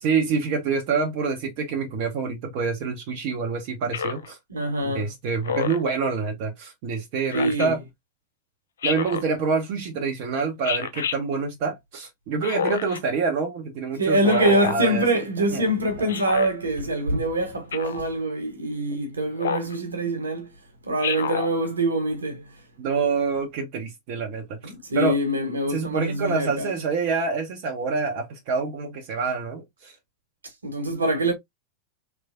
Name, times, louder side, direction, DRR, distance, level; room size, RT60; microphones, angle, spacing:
voice 1, 0.0-4.4 4.8-7.8 8.8-15.2 15.5-15.7 16.0-16.1 18.9-19.0 22.8-25.2 25.7-29.9, right 5 dB, 45° right, 0.8 m, -27 dB
Speech synthesizer, 3.9-4.3 5.4-5.9 7.3-7.7 8.8-9.3 10.6-11.2 12.4-13.0 14.2-14.8 16.1-16.5 17.7-18.0 19.4-19.7 21.0-21.5, left 7 dB, 65° left, 0.3 m, -28 dB
voice 2, 4.5-5.1 7.3-7.7 14.0-20.5 20.8-22.4 24.6-26.8 30.6-31.3, right 1 dB, 75° right, 1.0 m, -24 dB
3.3 x 3.0 x 2.5 m
figure-of-eight pair, 90°, 0 cm